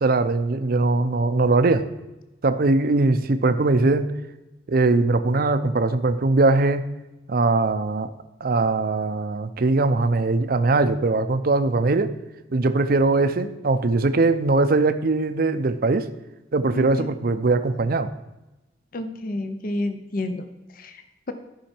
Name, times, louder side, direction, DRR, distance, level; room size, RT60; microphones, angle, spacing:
voice 1, 0.0-1.9 2.4-4.1 4.7-6.8 7.3-8.1 8.4-12.1 12.5-16.1 16.5-18.1, right 3 dB, 55° right, 10 dB, 0.6 m, -21 dB
voice 2, 16.7-17.1 18.9-21.3, left 2 dB, 50° left, 9 dB, 0.6 m, -31 dB
13.0 x 5.7 x 4.4 m, 1.0 s
head